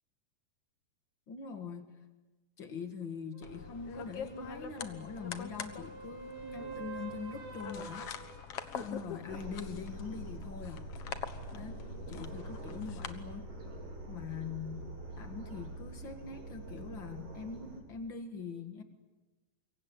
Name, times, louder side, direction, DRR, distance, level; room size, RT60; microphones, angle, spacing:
voice 1, 1.3-1.9 2.6-8.1 8.7-10.9 11.5-13.5 14.1-18.8, left 5 dB, 45° left, 7 dB, 1.6 m, -43 dB
sound 1, 3.3-9.0 13.1-13.2, right 4 dB, 80° right, 7.5 m, -48 dB
sound 2, 3.4-13.1, left 7 dB, 70° left, 1.4 m, -45 dB
sound 3, 9.3-17.8, right 1 dB, 40° right, 4.8 m, -45 dB
26.5 x 23.5 x 8.8 m, 1.2 s
omnidirectional pair, 4.6 m